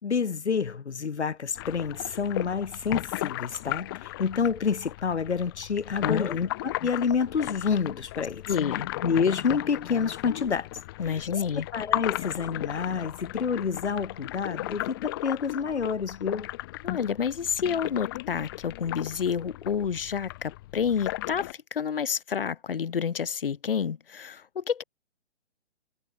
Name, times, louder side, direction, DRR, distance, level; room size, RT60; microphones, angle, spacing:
voice 1, 0.0-8.4 9.0-10.7 11.1-11.2 11.7-16.5, left 6 dB, 70° left, 3.8 m, -28 dB
sound 1, 1.6-21.5, left 18 dB, 20° left, 4.5 m, -36 dB
voice 2, 6.0-6.3 8.5-8.9 11.0-11.7 16.8-24.8, left 7 dB, 50° left, 2.3 m, -29 dB
hypercardioid pair, 175°, 34 cm